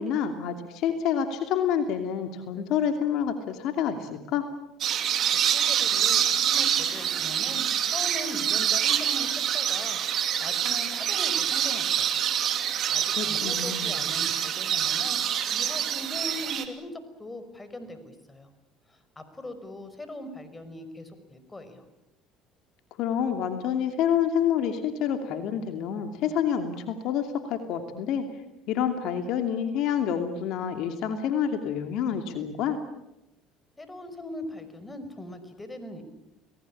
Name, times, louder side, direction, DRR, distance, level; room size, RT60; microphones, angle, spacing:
voice 1, 0.0-4.4 13.1-14.0 22.9-28.3 28.7-32.8, left 8 dB, 65° left, 7 dB, 2.8 m, -28 dB
sound 1, 4.8-16.7, right 9 dB, 55° right, 3.0 m, -26 dB
voice 2, 5.5-12.2 12.9-15.2 15.5-18.5 18.9-21.8 33.8-36.0, left 1 dB, 15° left, 10 dB, 5.4 m, -40 dB
29.5 x 19.5 x 8.7 m, 0.91 s
supercardioid pair, 80°, 0 cm